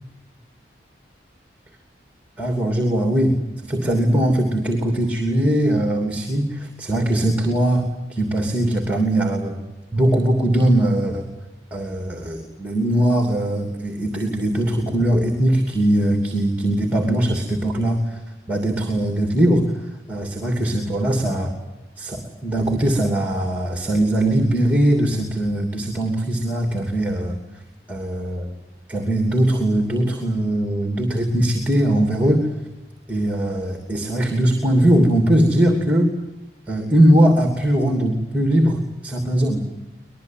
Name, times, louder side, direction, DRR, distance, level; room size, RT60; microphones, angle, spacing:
voice 1, 2.4-9.6 9.9-11.3 11.7-18.2 18.5-21.5 22.0-27.4 27.9-28.5 28.9-32.5 33.1-36.1 36.7-39.6, right 1 dB, 10° right, 4 dB, 2.9 m, -20 dB
25.5 x 21.0 x 9.4 m, 1.1 s
head